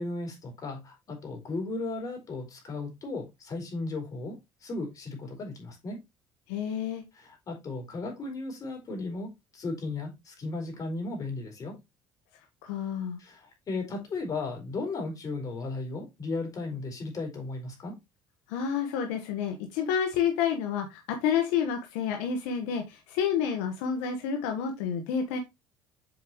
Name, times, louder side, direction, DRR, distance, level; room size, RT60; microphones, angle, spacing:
voice 1, 0.0-6.0 7.1-11.7 13.2-17.9, left 3 dB, 40° left, 3 dB, 4.3 m, -35 dB
voice 2, 6.5-7.0 12.6-13.2 18.5-25.4, left 7 dB, 90° left, 5 dB, 1.3 m, -29 dB
7.8 x 5.0 x 3.0 m, 0.21 s
supercardioid pair, 100°, 9 cm